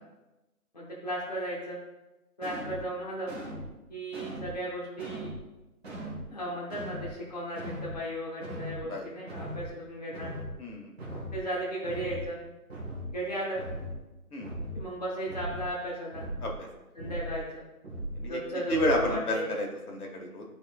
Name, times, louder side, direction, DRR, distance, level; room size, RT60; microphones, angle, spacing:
voice 1, 0.7-1.8 2.4-3.3 3.9-5.3 6.3-10.3 11.1-12.4 13.0-13.6 14.7-16.3 16.9-17.6 18.2-19.5, right 1 dB, 30° left, -6 dB, 0.8 m, -35 dB
sound 1, 2.4-2.8 3.3-3.7 4.1-4.6 5.0-5.4 5.8-6.3 6.7-7.1 7.6-8.0 8.4-8.8 9.3-9.7 10.1-10.6 11.0-11.4 11.8-12.3 12.7-13.1 13.6-14.0 14.4-14.8 15.3-15.7 16.1-16.6 17.0-17.4 17.8-18.3 18.7-19.2, equal, 40° right, 1.5 m, -38 dB
voice 2, 10.6-10.9 14.3-14.5 16.4-16.7 18.2-18.4 18.7-20.4, left 1 dB, 75° left, 1 dB, 1.7 m, -30 dB
11.0 x 4.4 x 2.4 m, 1.0 s
hypercardioid pair, 175°, 45 cm